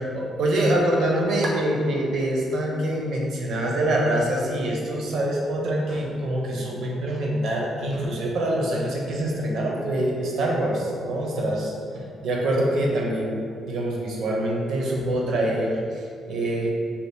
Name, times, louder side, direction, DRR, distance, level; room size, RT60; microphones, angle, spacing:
voice 1, 0.0-16.7, right 1 dB, 75° right, -2 dB, 0.6 m, -25 dB
2.9 x 2.3 x 3.3 m, 2.3 s
cardioid pair, 90°, 0 cm